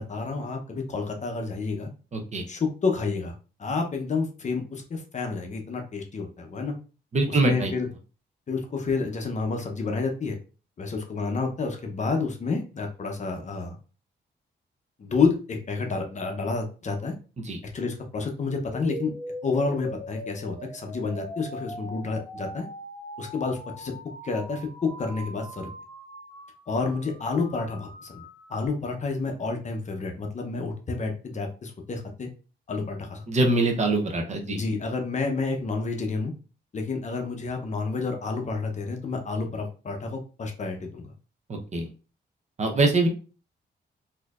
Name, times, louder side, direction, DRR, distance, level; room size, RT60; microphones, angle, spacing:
voice 1, 0.0-1.9 2.5-3.3 3.6-6.7 7.3-7.9 8.5-10.4 10.8-13.8 15.0-17.1 17.7-19.1 19.4-22.7 23.2-23.9 24.2-25.7 26.7-28.2 28.5-32.3 32.7-33.2 34.5-36.3 36.7-41.1, left 4 dB, 40° left, 4 dB, 0.7 m, -29 dB
voice 2, 2.1-2.4 7.1-7.7 17.4-17.6 33.3-34.6 41.5-41.9 42.6-43.1, right 2 dB, 40° right, 3 dB, 0.7 m, -23 dB
sound 1, 18.7-28.7, equal, 20° left, 1.7 m, -41 dB
4.2 x 2.7 x 2.4 m, 0.36 s
wide cardioid pair, 125°, 19 cm